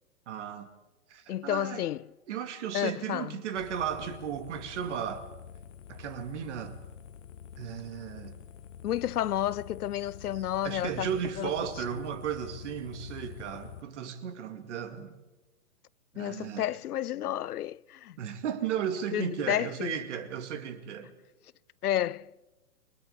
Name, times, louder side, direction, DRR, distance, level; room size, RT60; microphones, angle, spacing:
voice 1, 0.3-0.7 1.1-1.8 2.3-5.3 5.9-6.8 7.6-8.4 10.6-15.2 16.1-16.7 18.2-21.1, right 8 dB, 50° right, 2.3 m, -35 dB
voice 2, 1.3-2.1 2.7-3.4 8.8-11.1 11.4-11.5 16.2-18.2 19.1-20.0 21.8-22.3, left 12 dB, 75° left, 0.6 m, -31 dB
sound 1, 3.5-13.8, left 8 dB, 50° left, 0.9 m, -47 dB
28.0 x 23.0 x 4.2 m
hypercardioid pair, 140°, 45 cm